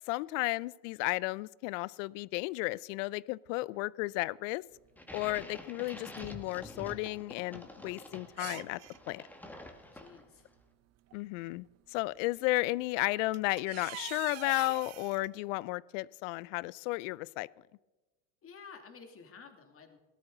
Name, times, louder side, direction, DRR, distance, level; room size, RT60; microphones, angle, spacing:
voice 1, 0.1-4.6 5.1-8.8 9.1-9.2 11.1-17.5, left 21 dB, 70° left, 23 dB, 0.5 m, -33 dB
sound 1, 4.8-4.9 5.6-6.7 7.0-7.1 7.7-7.8 8.3-9.0 10.4-10.5 11.1-11.5 12.7-12.8 13.1-15.3, right 15 dB, 45° right, 0.7 m, -45 dB
sound 2, 5.0-10.5, left 1 dB, 5° left, 1.6 m, -48 dB
voice 2, 9.5-10.5 18.4-20.0, left 5 dB, 35° left, 5 dB, 2.5 m, -52 dB
17.5 x 13.0 x 3.9 m, 1.1 s
supercardioid pair, 105°, 39 cm